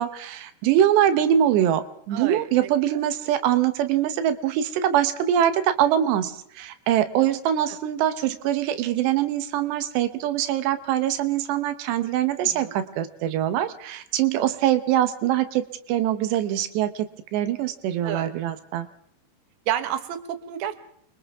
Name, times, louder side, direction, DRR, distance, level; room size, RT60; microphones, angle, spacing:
voice 1, 0.0-17.1 17.3-18.9, right 11 dB, 90° right, 10 dB, 3.2 m, -23 dB
voice 2, 2.1-2.7 7.2-7.3 12.4-12.7 14.4-14.5 18.0-18.3 19.7-20.8, right 11 dB, 70° right, 8 dB, 3.2 m, -30 dB
29.0 x 25.0 x 3.6 m, 0.68 s
omnidirectional pair, 4.8 m